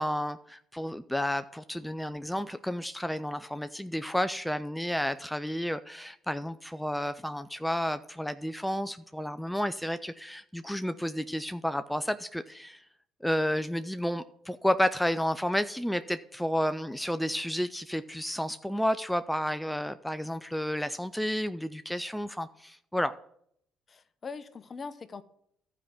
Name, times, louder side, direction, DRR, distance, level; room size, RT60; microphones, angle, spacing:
voice 1, 0.0-12.8 13.2-23.1, equal, 5° left, 0.4 m, -31 dB
voice 2, 23.9-25.2, left 4 dB, 40° left, 0.7 m, -41 dB
12.5 x 4.9 x 5.9 m
hypercardioid pair, 55°, 0 cm